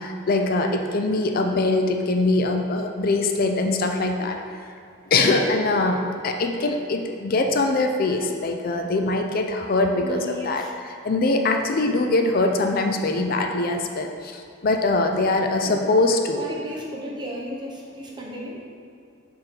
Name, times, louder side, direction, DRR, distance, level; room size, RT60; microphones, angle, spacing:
voice 1, 0.0-4.4 5.1-16.5, left 2 dB, 45° left, 4 dB, 0.5 m, -23 dB
voice 2, 10.0-10.7 16.4-18.6, equal, 20° right, -3 dB, 0.8 m, -34 dB
6.8 x 3.7 x 4.5 m, 2.5 s
head